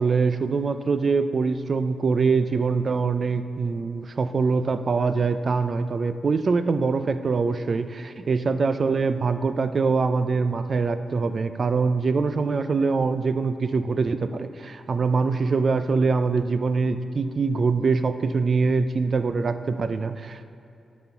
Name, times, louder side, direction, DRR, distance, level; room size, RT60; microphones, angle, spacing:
voice 1, 0.0-20.4, right 4 dB, 45° right, 10 dB, 0.4 m, -24 dB
10.5 x 4.3 x 5.7 m, 2.7 s
wide cardioid pair, 120°, 0 cm